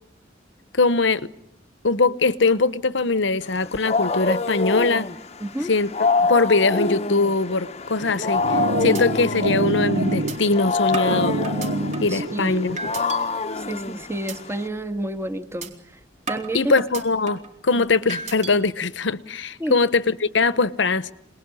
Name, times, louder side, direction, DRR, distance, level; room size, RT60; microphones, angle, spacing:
voice 1, 0.7-1.3 1.8-5.1 5.7-5.9 6.3-11.4 12.0-12.8 16.5-21.1, left 3 dB, 70° left, 16 dB, 1.0 m, -21 dB
Wild animals, 3.5-14.7, left 4 dB, 35° left, 0.9 m, -26 dB
voice 2, 5.4-5.8 12.1-12.8 13.5-16.0 16.3-16.7 17.7-17.8 19.6-19.8, right 1 dB, 15° right, 6 dB, 1.7 m, -30 dB
sound 1, 8.0-13.0, right 1 dB, 70° right, 1.8 m, -27 dB
sound 2, 8.3-8.6 8.9-9.0 9.5-9.6 10.3-10.4 10.9-12.2 12.8-13.2 13.6-13.9 14.3-14.4 14.8-15.0 15.6-15.7 16.3-17.5 18.1-18.5, right 4 dB, 40° right, 4.0 m, -34 dB
26.5 x 20.0 x 9.9 m, 0.80 s
head